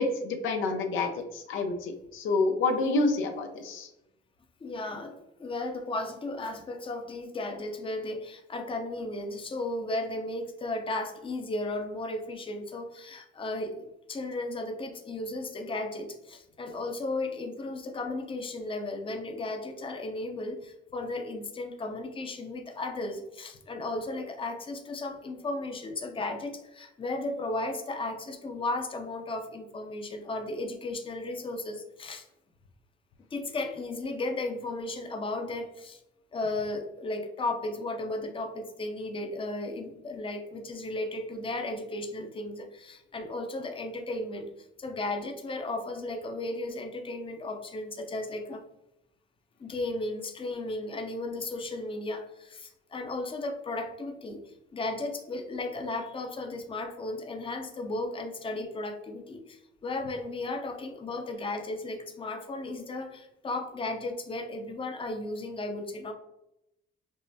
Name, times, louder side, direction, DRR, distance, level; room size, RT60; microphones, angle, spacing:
voice 1, 0.0-3.9, left 3 dB, 85° left, 4 dB, 0.6 m, -28 dB
voice 2, 4.6-32.2 33.3-36.0 36.3-44.5 44.8-48.6 49.6-66.1, left 2 dB, 25° left, 4 dB, 0.6 m, -35 dB
5.4 x 2.0 x 2.7 m, 0.87 s
cardioid pair, 90°, 20 cm